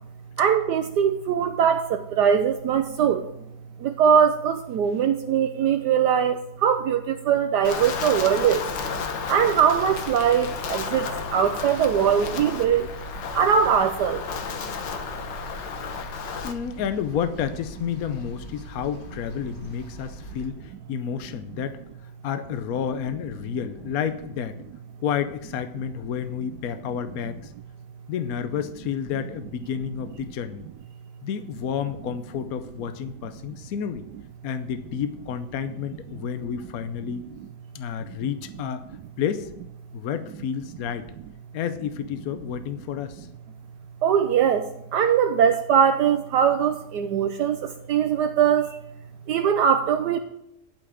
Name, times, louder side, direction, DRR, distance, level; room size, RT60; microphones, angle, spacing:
voice 1, 0.4-3.3 3.8-8.7 9.3-12.9 13.3-14.2 44.0-48.8 49.3-50.2, right 8 dB, 75° right, 8 dB, 1.2 m, -21 dB
Wind, 7.6-16.5, left 6 dB, 80° left, 1.8 m, -33 dB
sound 1, 7.7-20.5, equal, 30° left, 1.8 m, -42 dB
voice 2, 16.4-21.8 22.2-24.6 25.0-27.5 28.1-30.7 31.2-34.1 34.4-37.3 37.7-38.8 39.2-39.5 39.9-41.1 41.5-43.3, left 8 dB, 65° left, 10 dB, 1.0 m, -30 dB
12.0 x 5.9 x 6.9 m, 0.83 s
omnidirectional pair, 1.9 m